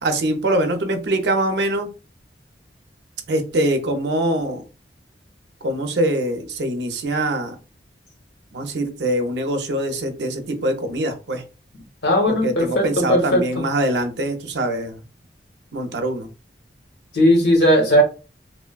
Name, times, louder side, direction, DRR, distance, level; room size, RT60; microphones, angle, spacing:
voice 1, 0.0-1.9 3.3-4.6 5.6-7.6 8.5-11.4 12.3-15.0 15.7-16.3, right 1 dB, 75° right, 0.5 m, -23 dB
voice 2, 12.0-13.6 17.1-18.0, equal, 75° left, 1.0 m, -17 dB
3.1 x 2.1 x 2.2 m
head